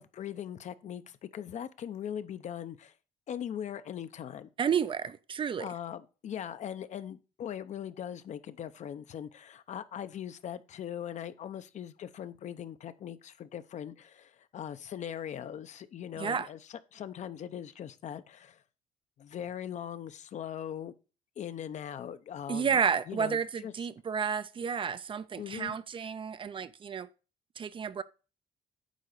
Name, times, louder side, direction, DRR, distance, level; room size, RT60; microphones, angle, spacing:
voice 1, 0.0-2.9 3.3-4.5 5.6-18.6 19.2-20.9 21.4-22.8 23.1-23.4 23.6-23.7 25.4-25.8, left 9 dB, 50° left, 0.7 m, -40 dB
voice 2, 4.6-5.7 16.1-16.5 22.5-27.1 27.6-28.0, right 7 dB, 35° right, 0.5 m, -31 dB
9.2 x 3.8 x 6.7 m
cardioid pair, 125°, 15 cm